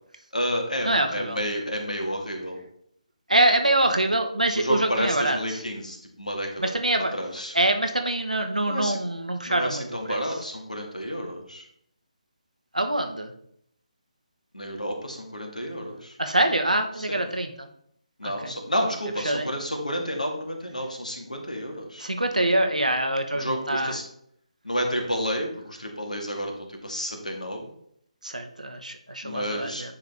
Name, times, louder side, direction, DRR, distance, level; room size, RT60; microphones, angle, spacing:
voice 1, 0.3-2.6 4.6-6.7 7.1-7.6 8.7-9.0 9.4-11.7 14.5-16.2 16.9-17.2 18.2-22.1 23.3-24.0 24.6-27.7 29.2-29.9, equal, 85° left, 3 dB, 1.8 m, -30 dB
voice 2, 0.8-1.4 3.3-5.4 6.6-7.1 7.5-9.8 10.1-10.2 12.7-13.3 16.2-17.7 18.2-18.5 19.2-19.5 22.0-23.9 28.2-29.9, right 1 dB, 85° right, 5 dB, 1.1 m, -24 dB
9.9 x 3.7 x 3.4 m, 0.70 s
figure-of-eight pair, 150°, 4 cm